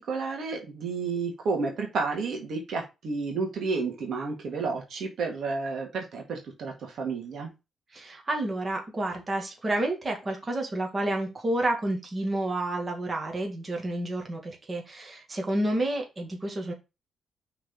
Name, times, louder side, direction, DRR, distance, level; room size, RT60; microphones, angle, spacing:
voice 1, 0.1-7.5, right 4 dB, 65° right, 2 dB, 1.9 m, -31 dB
voice 2, 7.9-16.7, right 1 dB, 30° right, 2 dB, 2.2 m, -30 dB
5.5 x 4.0 x 5.3 m, 0.25 s
cardioid pair, 95°, 0 cm